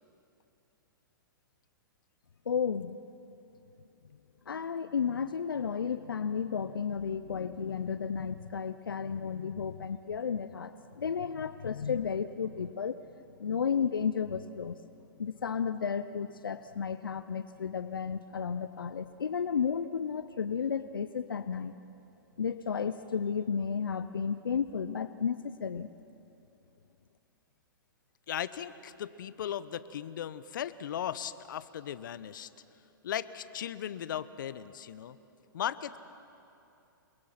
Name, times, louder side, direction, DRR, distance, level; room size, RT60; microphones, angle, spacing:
voice 1, 2.5-3.0 4.5-13.0 13.4-14.8 15.2-21.7 22.4-25.9, left 6 dB, 85° left, 12 dB, 0.7 m, -33 dB
voice 2, 28.3-32.5 33.0-35.2 35.5-36.0, left 10 dB, 65° left, 15 dB, 1.0 m, -37 dB
29.0 x 22.0 x 5.9 m, 2.8 s
hypercardioid pair, 120°, 11 cm